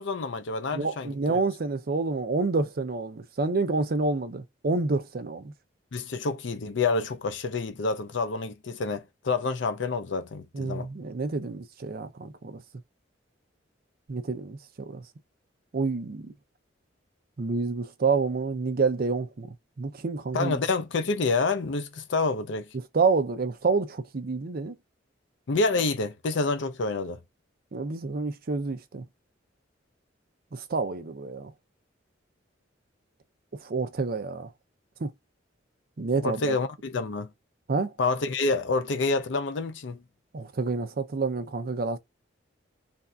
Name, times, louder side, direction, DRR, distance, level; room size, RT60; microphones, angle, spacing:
voice 1, 0.0-1.4 5.9-10.9 20.3-22.7 25.5-27.2 36.2-37.3 38.0-40.0, left 3 dB, 70° left, 0.5 m, -28 dB
voice 2, 0.7-5.5 10.5-12.6 14.1-15.0 15.7-16.3 17.4-20.6 22.9-24.8 27.7-29.0 30.5-31.5 33.6-34.5 35.0-35.1 36.0-36.5 37.7-37.9 40.3-42.0, right 4 dB, 50° right, 0.5 m, -28 dB
3.3 x 2.6 x 2.3 m
head